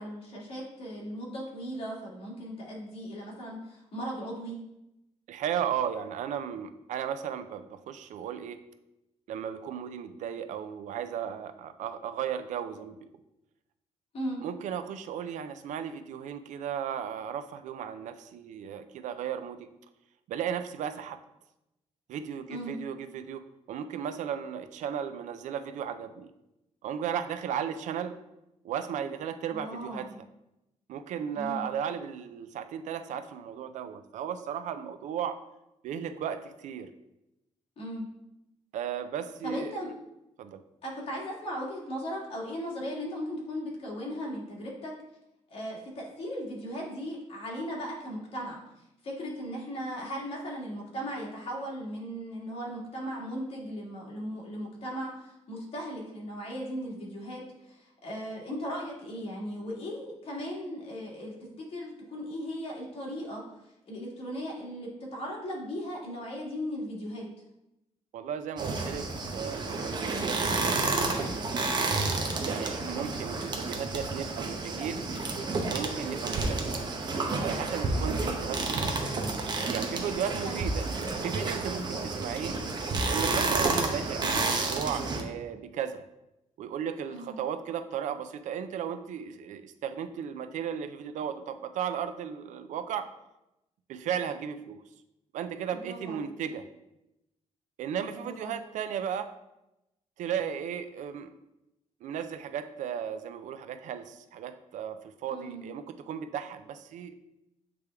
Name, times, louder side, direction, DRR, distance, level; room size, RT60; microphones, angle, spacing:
voice 1, 0.0-4.6 14.1-14.4 22.5-22.7 29.5-30.1 31.3-31.7 37.8-38.1 39.4-39.9 40.8-44.9 45.5-48.6 49.0-63.4 63.9-67.3 72.8-73.1 77.9-78.2 80.4-80.6 87.1-87.4 95.7-96.3 98.2-98.6 105.3-105.6, equal, 50° left, -3 dB, 1.8 m, -37 dB
voice 2, 5.3-8.6 9.3-13.0 14.4-19.7 20.3-21.2 22.1-26.3 26.8-28.2 28.6-30.1 30.9-35.4 35.8-36.9 38.7-39.7 40.4-40.6 68.1-71.8 72.4-75.0 75.7-76.7 77.4-78.9 79.7-80.8 81.2-82.6 83.0-86.0 86.6-93.1 93.9-94.8 95.3-96.7 97.8-99.3 100.2-101.3 102.0-107.2, right 8 dB, 80° right, 10 dB, 0.5 m, -35 dB
sound 1, 68.6-85.2, right 3 dB, 35° right, 0.8 m, -30 dB
8.1 x 3.4 x 3.4 m, 0.89 s
cardioid pair, 135°, 12 cm